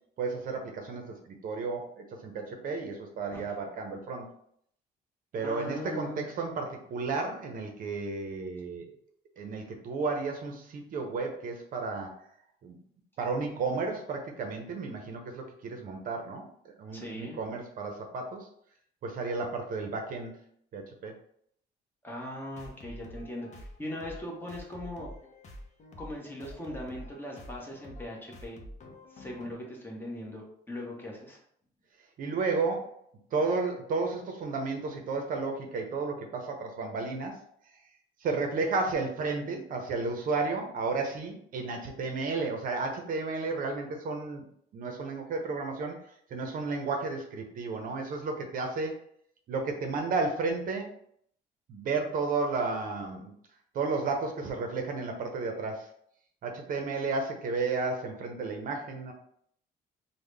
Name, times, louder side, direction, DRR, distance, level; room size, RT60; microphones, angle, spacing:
voice 1, 0.2-4.3 5.3-8.9 9.4-12.1 12.6-12.8 13.2-18.5 19.0-20.3 20.7-21.1 32.2-33.0 33.3-37.4 38.2-44.5 44.7-46.0 46.3-49.0 49.5-50.9 51.7-53.3 53.7-55.9 56.4-59.1, right 4 dB, 55° right, 3 dB, 0.6 m, -32 dB
voice 2, 5.4-6.4 16.9-17.4 22.0-25.1 26.0-28.6 29.1-31.4, left 1 dB, 10° left, -2 dB, 0.9 m, -40 dB
sound 1, 22.5-29.5, left 1 dB, 45° left, 0.6 m, -47 dB
3.6 x 2.1 x 3.2 m, 0.66 s
cardioid pair, 110°, 17 cm